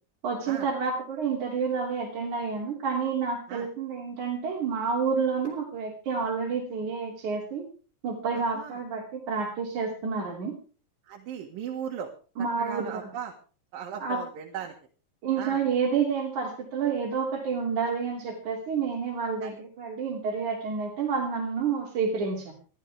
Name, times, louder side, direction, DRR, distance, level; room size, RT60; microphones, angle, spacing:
voice 1, 0.2-7.6 8.0-10.6 12.4-12.8 14.0-14.2 15.2-22.5, right 5 dB, 60° right, -3 dB, 4.2 m, -29 dB
voice 2, 8.4-8.8 11.1-12.1 12.6-13.3 13.7-14.7 15.4-15.6 19.4-19.5, right 8 dB, 85° right, 1 dB, 3.3 m, -37 dB
22.5 x 13.0 x 3.5 m, 0.37 s
omnidirectional pair, 4.0 m